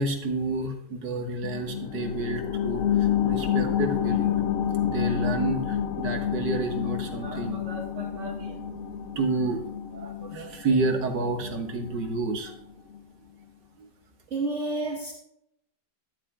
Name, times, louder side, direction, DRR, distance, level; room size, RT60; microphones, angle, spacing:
voice 1, 0.0-4.4 4.8-8.6 9.2-9.6 9.9-12.6 13.8-13.9, right 2 dB, 85° right, 3 dB, 2.1 m, -30 dB
sound 1, 1.4-12.5 12.9-13.0, left 9 dB, 60° left, 1.0 m, -29 dB
voice 2, 14.3-15.1, right 2 dB, 50° right, 0 dB, 1.4 m, -29 dB
14.0 x 10.5 x 2.3 m, 0.77 s
omnidirectional pair, 1.8 m